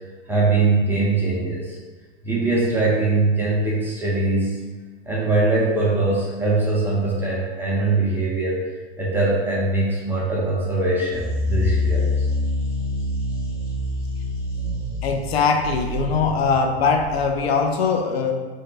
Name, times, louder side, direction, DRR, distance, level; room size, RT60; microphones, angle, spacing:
voice 1, 0.3-1.8 2.2-4.6 5.1-8.6 9.0-12.3, right 2 dB, 5° right, -6 dB, 0.4 m, -22 dB
sound 1, 11.1-17.6, left 2 dB, 10° left, 0.8 m, -26 dB
voice 2, 15.0-18.3, left 5 dB, 65° left, 3 dB, 0.5 m, -21 dB
2.6 x 2.1 x 3.8 m, 1.3 s
hypercardioid pair, 110°, 33 cm